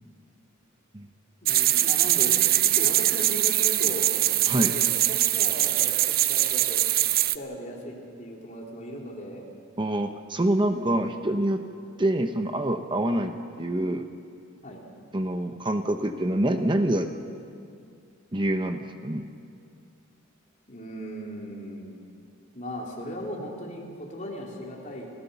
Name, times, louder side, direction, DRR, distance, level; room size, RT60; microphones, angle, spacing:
voice 1, 1.4-4.1 4.5-6.8 7.3-9.5 14.6-14.8 20.7-21.9 22.5-25.1, equal, 35° left, -2 dB, 3.6 m, -37 dB
sound 1, 1.5-7.4, right 14 dB, 45° right, 0.5 m, -22 dB
voice 2, 9.8-11.6 12.0-14.1 15.1-17.1 18.3-19.2, right 1 dB, 25° right, 6 dB, 0.9 m, -26 dB
29.0 x 15.5 x 7.0 m, 2.4 s
head